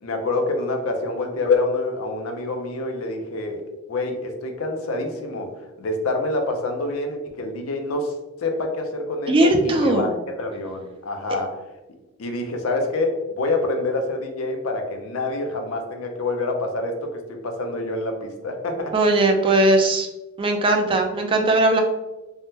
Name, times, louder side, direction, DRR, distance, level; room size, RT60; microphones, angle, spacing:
voice 1, 0.0-3.6 3.9-5.5 5.8-8.1 8.4-10.1 10.4-11.6 12.2-18.9, left 2 dB, 85° left, 4 dB, 0.5 m, -26 dB
voice 2, 9.3-10.1 18.9-20.1 20.4-21.8, right 2 dB, 25° right, 3 dB, 0.3 m, -18 dB
3.5 x 2.1 x 2.7 m, 1.0 s
head